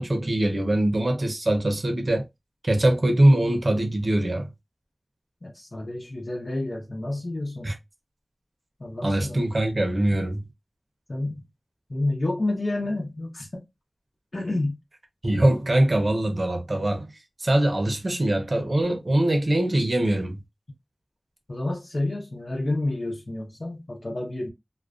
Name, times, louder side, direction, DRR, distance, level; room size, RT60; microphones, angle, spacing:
voice 1, 0.0-2.3 2.6-4.5 7.6-7.7 9.0-10.4 15.2-17.1 17.4-20.4, right 1 dB, 65° right, 0.7 m, -22 dB
voice 2, 5.4-7.7 8.8-9.5 11.1-11.4 11.9-13.5 14.3-14.7 21.5-24.5, left 2 dB, 70° left, 0.8 m, -29 dB
2.4 x 2.2 x 2.4 m
wide cardioid pair, 55°, 0 cm